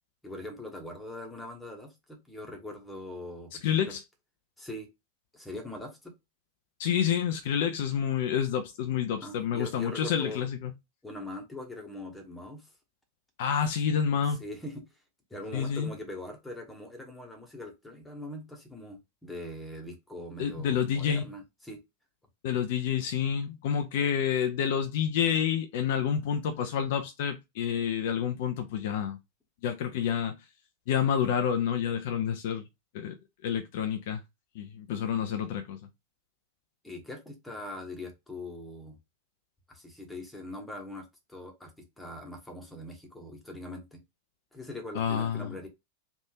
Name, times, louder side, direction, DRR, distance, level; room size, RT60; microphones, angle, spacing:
voice 1, 0.2-3.9 4.6-4.9 5.3-6.1 9.2-10.5 11.0-12.7 14.4-14.8 15.3-21.8 36.8-39.0 39.7-44.0 44.5-45.7, left 1 dB, 5° left, 1.1 m, -42 dB
voice 2, 3.6-4.0 6.8-10.7 13.4-14.4 15.5-15.9 20.4-21.3 22.4-29.2 29.6-30.4 30.9-32.6 32.9-33.1 33.4-34.2 34.5-35.8 44.9-45.6, left 8 dB, 50° left, 0.5 m, -28 dB
3.4 x 2.6 x 2.8 m
figure-of-eight pair, 90°, 0 cm